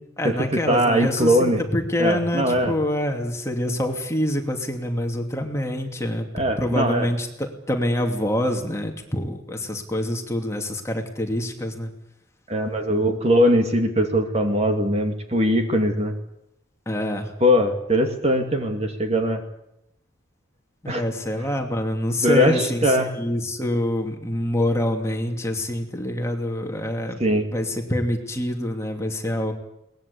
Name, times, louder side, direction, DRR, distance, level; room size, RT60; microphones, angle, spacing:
voice 1, 0.2-6.3 6.6-11.9 16.9-17.3 20.8-27.2 27.5-29.5, left 1 dB, 15° left, 3 dB, 2.7 m, -26 dB
voice 2, 0.7-1.6 2.0-2.7 6.3-7.1 12.5-16.1 17.4-19.4 20.9-21.0 22.2-23.1 27.2-27.5, equal, 30° right, 5 dB, 2.4 m, -21 dB
22.5 x 20.0 x 8.5 m, 0.82 s
head